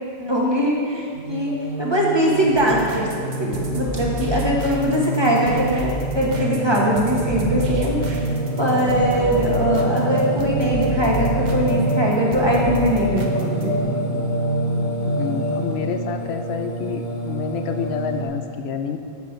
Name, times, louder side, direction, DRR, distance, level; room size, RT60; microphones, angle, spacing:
voice 1, 0.2-3.1 3.4-8.3 8.6-13.8, equal, 25° right, -3 dB, 1.1 m, -21 dB
Singing, 1.1-18.2, right 1 dB, 50° left, 1.8 m, -25 dB
sound 1, 2.5-13.8, right 1 dB, 50° right, 0.8 m, -32 dB
voice 2, 15.1-19.0, left 7 dB, 90° left, 7 dB, 0.9 m, -28 dB
8.0 x 5.0 x 5.7 m, 2.2 s
omnidirectional pair, 1.1 m